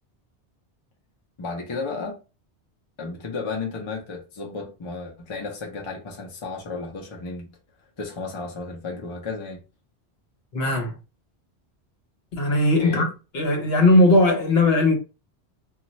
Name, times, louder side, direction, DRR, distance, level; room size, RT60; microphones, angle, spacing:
voice 1, 1.4-2.2 3.0-7.5 8.0-9.6 12.8-13.1, left 3 dB, 35° left, 0.6 m, -33 dB
voice 2, 10.5-10.9 12.3-13.1 13.3-15.0, left 1 dB, 65° left, 1.0 m, -18 dB
2.3 x 2.1 x 3.9 m
omnidirectional pair, 1.1 m